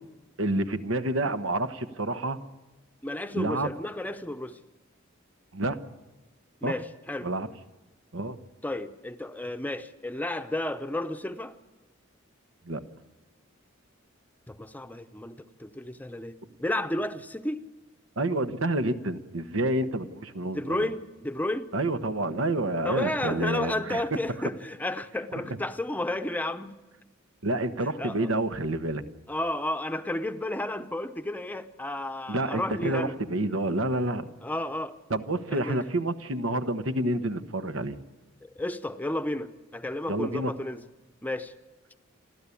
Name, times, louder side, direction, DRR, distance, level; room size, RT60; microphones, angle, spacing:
voice 1, 0.4-2.4 3.3-3.7 5.5-5.8 6.6-6.7 7.2-7.5 8.1-8.4 12.6-12.8 18.2-20.9 21.7-24.0 25.3-25.4 27.4-29.0 32.3-34.3 35.1-38.0 40.1-40.5, right 1 dB, 85° right, 10 dB, 1.3 m, -28 dB
voice 2, 3.0-4.6 6.6-7.3 8.6-11.6 14.5-17.6 20.5-21.7 22.8-26.7 28.0-28.3 29.3-33.2 34.4-34.9 35.5-35.8 38.4-40.8 41.2-41.5, left 1 dB, 10° left, 9 dB, 0.8 m, -32 dB
29.0 x 12.5 x 8.5 m, 1.1 s
head